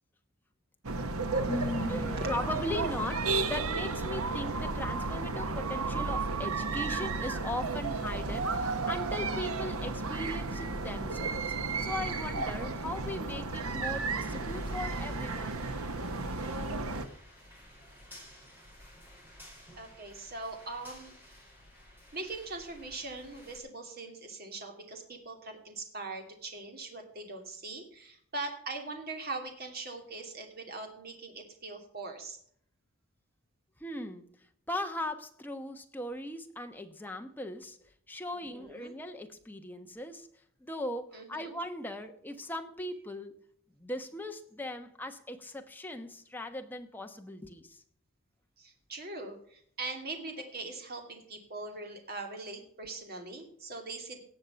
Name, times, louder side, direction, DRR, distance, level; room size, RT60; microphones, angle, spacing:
sound 1, 0.8-17.1, right 3 dB, 75° right, 1.1 m, -33 dB
voice 1, 1.4-15.7 33.8-34.3 34.7-37.8 38.1-40.3 40.6-43.3 43.8-47.8, left 1 dB, 10° left, 1.1 m, -38 dB
sound 2, 14.2-23.6, equal, 10° right, 4.7 m, -54 dB
voice 2, 19.8-21.1 22.1-32.4 38.3-38.9 41.1-41.5 48.6-54.2, right 3 dB, 45° right, 2.7 m, -41 dB
18.0 x 6.7 x 5.7 m
head